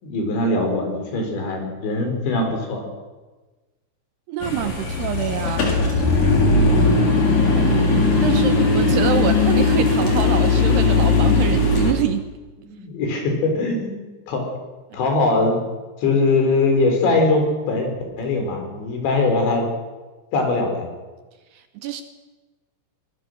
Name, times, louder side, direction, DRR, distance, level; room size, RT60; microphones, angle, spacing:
voice 1, 0.0-2.8 6.4-6.9 12.6-14.5 14.9-15.6 16.0-17.9 18.2-19.7 20.3-20.9, left 2 dB, 70° left, 3 dB, 6.4 m, -21 dB
voice 2, 4.3-5.7 7.6-7.9 8.2-12.3 21.8-22.0, right 10 dB, 70° right, 9 dB, 2.8 m, -26 dB
sound 1, 4.4-11.9, left 3 dB, 45° left, 4.0 m, -18 dB
22.5 x 20.0 x 6.6 m, 1.2 s
omnidirectional pair, 5.5 m